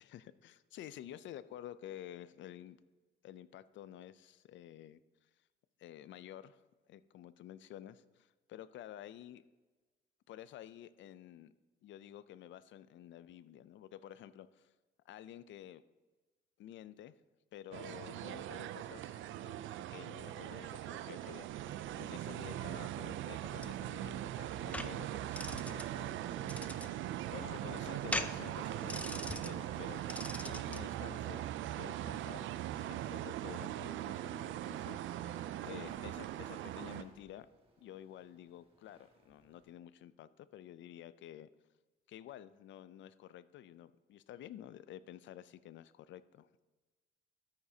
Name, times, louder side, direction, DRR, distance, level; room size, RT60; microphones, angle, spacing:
voice 1, 0.0-2.8 3.2-5.0 5.8-6.6 6.9-9.4 10.3-11.5 11.8-14.7 15.1-15.8 16.6-17.1 17.5-19.6 19.9-30.0 30.4-31.4 31.7-35.4 35.6-37.5 37.8-41.5 42.1-46.6, left 11 dB, 70° left, 16 dB, 0.5 m, -51 dB
sound 1, 17.7-37.0, right 13 dB, 75° right, 0.4 m, -41 dB
sound 2, 23.3-30.9, left 1 dB, 5° left, 0.4 m, -43 dB
sound 3, 26.9-39.7, right 2 dB, 30° right, 1.7 m, -63 dB
13.0 x 8.9 x 2.8 m, 1.3 s
cardioid pair, 90°, 20 cm